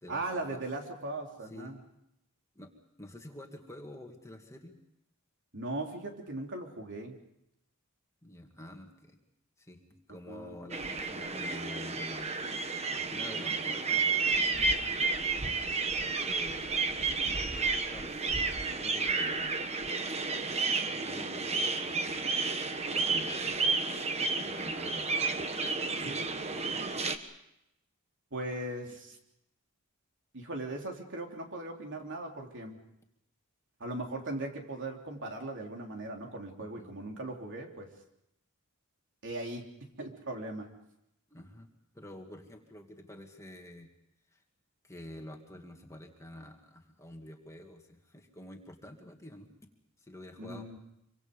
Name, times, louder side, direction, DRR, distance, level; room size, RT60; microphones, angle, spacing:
voice 1, 0.1-1.8 5.5-7.2 10.3-10.5 26.0-26.1 28.3-29.2 30.3-32.8 33.8-37.9 39.2-39.7 40.0-40.7 50.4-50.8, right 2 dB, 55° right, 2 dB, 3.5 m, -38 dB
voice 2, 3.0-4.8 8.2-9.2 9.6-12.3 12.9-15.1 16.2-16.7 17.5-18.4 18.8-19.5 20.4-22.2 22.8-23.5 24.3-25.3 25.6-26.3 26.5-27.0 36.8-36.9 41.3-41.7 41.9-43.9 44.3-44.4 44.8-49.5 50.0-50.7, left 1 dB, 15° left, 2 dB, 2.2 m, -48 dB
sound 1, 10.7-27.2, right 4 dB, 30° right, 1.4 m, -31 dB
26.5 x 25.0 x 5.4 m, 0.83 s
head